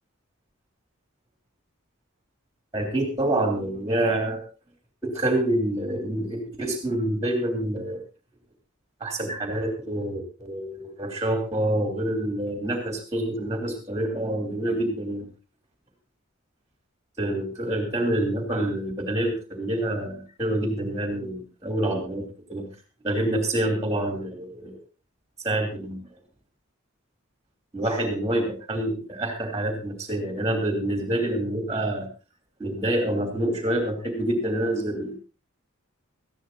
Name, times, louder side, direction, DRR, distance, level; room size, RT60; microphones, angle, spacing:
voice 1, 2.7-4.5 5.0-8.0 9.0-15.3 17.2-22.7 23.0-24.8 25.4-26.0 27.7-32.1 32.6-35.1, right 1 dB, 15° right, 3 dB, 3.3 m, -27 dB
19.5 x 14.5 x 2.8 m, 0.32 s
head